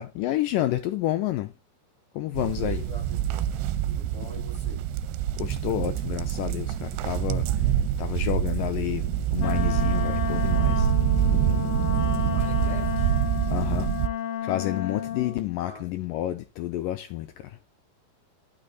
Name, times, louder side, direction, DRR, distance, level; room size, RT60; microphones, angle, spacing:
voice 1, 0.0-1.5 2.1-2.8 5.4-10.9 11.3-11.8 13.5-13.9 14.4-17.6, left 14 dB, 90° left, 1.9 m, -30 dB
sound 1, 2.4-14.1, right 10 dB, 85° right, 2.6 m, -26 dB
voice 2, 2.6-3.4 3.8-4.9 12.3-13.2 15.2-15.9, equal, ahead, 5.8 m, -45 dB
Wind instrument woodwind instrument, 9.4-15.5, left 9 dB, 65° left, 2.5 m, -31 dB
12.0 x 5.8 x 4.0 m
omnidirectional pair, 4.8 m